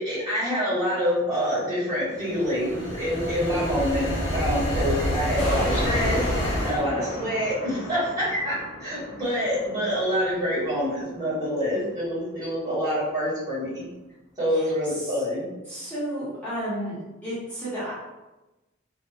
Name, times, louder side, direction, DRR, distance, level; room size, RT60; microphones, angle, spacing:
voice 1, 0.0-13.9 14.4-15.5, equal, 20° right, -12 dB, 1.4 m, -26 dB
sound 1, 2.1-6.8, left 1 dB, 55° left, 1.0 m, -27 dB
sound 2, 5.4-12.0 12.4-12.5, left 1 dB, 35° left, 0.5 m, -37 dB
voice 2, 14.5-15.2 15.6-17.9, right 1 dB, 10° left, -11 dB, 0.9 m, -33 dB
2.8 x 2.2 x 2.4 m, 1.1 s
head